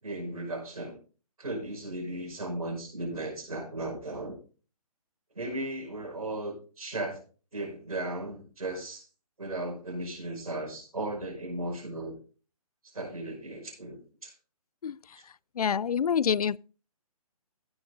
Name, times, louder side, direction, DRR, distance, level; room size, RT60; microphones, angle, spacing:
voice 1, 0.0-0.9 1.4-4.4 5.3-7.2 7.5-9.1 9.4-12.2 12.9-14.3, right 1 dB, 75° right, 5.4 m, -36 dB
voice 2, 15.6-16.6, left 7 dB, 75° left, 0.4 m, -26 dB
15.5 x 5.8 x 3.7 m
figure-of-eight pair, 140°, 19 cm